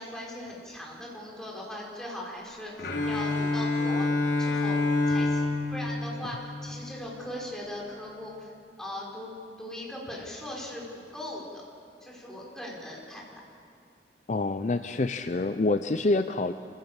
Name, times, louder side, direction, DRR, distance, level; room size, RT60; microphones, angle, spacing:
voice 1, 0.0-4.1 4.4-4.8 5.1-8.5 8.8-11.6 12.0-13.2, left 1 dB, 5° left, -4 dB, 5.0 m, -39 dB
Bowed string instrument, 2.8-6.9, left 3 dB, 90° left, 3.4 m, -27 dB
voice 2, 14.3-16.5, left 2 dB, 45° left, 10 dB, 0.5 m, -26 dB
26.5 x 16.5 x 7.3 m, 2.4 s
head